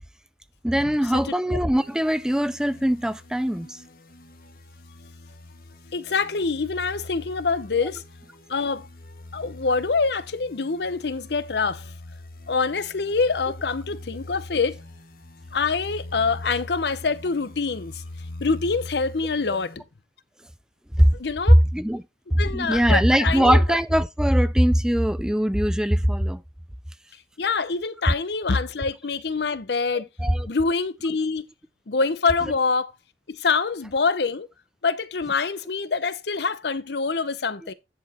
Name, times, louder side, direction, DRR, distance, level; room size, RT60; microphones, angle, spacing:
voice 1, 0.6-3.8 21.0-21.1 21.5-22.0 22.3-26.4 30.2-30.5, equal, 5° right, 0.4 m, -20 dB
sound 1, 1.8-19.8, left 2 dB, 55° left, 1.3 m, -42 dB
voice 2, 5.9-8.0 8.5-8.9 9.3-11.8 12.5-14.8 15.5-18.0 18.4-19.8 21.2-21.6 22.4-23.6 27.4-30.1 30.5-31.5 31.9-32.9 33.3-34.5 34.8-37.7, left 4 dB, 75° left, 0.7 m, -25 dB
10.5 x 4.8 x 4.2 m
head